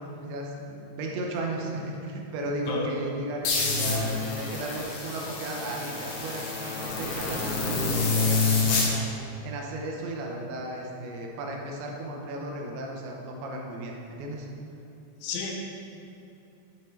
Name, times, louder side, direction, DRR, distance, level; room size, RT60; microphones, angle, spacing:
voice 1, 0.0-14.5, right 1 dB, 85° right, 0 dB, 3.1 m, -35 dB
sound 1, 3.4-8.9, left 3 dB, 70° left, 2.1 m, -27 dB
voice 2, 15.2-15.5, left 4 dB, 90° left, -1 dB, 3.3 m, -32 dB
7.7 x 5.2 x 4.3 m, 2.7 s
omnidirectional pair, 5.3 m